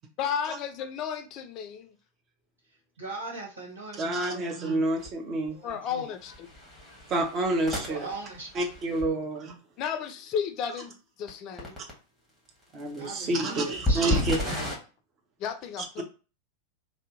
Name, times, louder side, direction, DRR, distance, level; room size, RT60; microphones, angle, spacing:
voice 1, 0.2-1.9 5.6-6.5 9.8-10.9 11.2-11.8 15.4-16.0, left 7 dB, 40° left, 0.4 m, -33 dB
voice 2, 3.0-4.4 5.5-6.1 7.9-8.5 9.1-9.2 13.0-14.7, right 2 dB, 70° right, 1.2 m, -40 dB
voice 3, 4.0-5.6 7.1-8.1 8.5-9.5 12.7-14.4, right 2 dB, 30° right, 0.7 m, -28 dB
sound 1, 5.0-5.1 5.5-5.7 6.2-9.1 11.3-11.4 11.6-11.9 12.8-14.8, left 1 dB, 5° right, 1.2 m, -32 dB
2.6 x 2.0 x 3.8 m
figure-of-eight pair, 90°, 0 cm